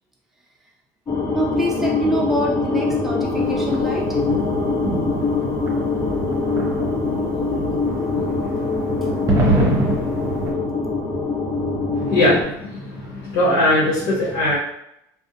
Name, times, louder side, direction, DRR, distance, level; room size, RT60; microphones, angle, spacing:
sound 1, 1.1-12.4, left 3 dB, 35° left, 0.9 m, -23 dB
voice 1, 1.3-4.2, right 1 dB, 5° right, -3 dB, 0.6 m, -25 dB
sound 2, 3.4-10.5, right 2 dB, 35° right, 0.8 m, -26 dB
voice 2, 11.9-14.6, left 1 dB, 75° left, -5 dB, 0.9 m, -20 dB
2.6 x 2.0 x 2.7 m, 0.77 s
supercardioid pair, 110°, 10 cm